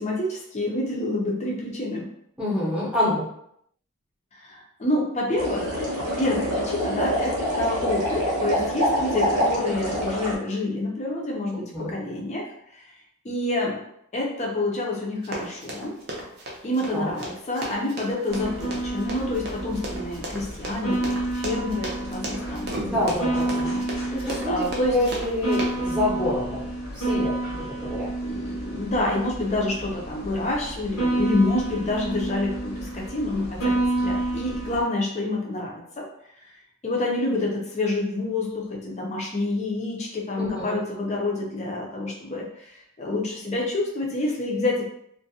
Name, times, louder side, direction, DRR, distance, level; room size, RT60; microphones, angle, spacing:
voice 1, 0.0-2.1 4.3-12.5 13.2-13.8 14.1-15.9 16.6-23.1 23.4-23.8 24.5-25.0 28.2-36.0 36.8-42.6 43.0-44.9, left 2 dB, 30° left, -2 dB, 0.5 m, -28 dB
voice 2, 2.4-3.2 11.7-11.9 16.9-17.1 22.8-23.7 24.1-26.7 26.9-28.1 40.4-40.7, left 1 dB, 5° right, -8 dB, 0.7 m, -27 dB
sound 1, 5.3-10.3, equal, 85° right, 0.8 m, -26 dB
Run, 15.2-25.9, right 1 dB, 45° right, 0.5 m, -35 dB
sound 2, 18.3-34.8, right 2 dB, 80° left, 0.9 m, -29 dB
2.4 x 2.1 x 2.6 m, 0.72 s
head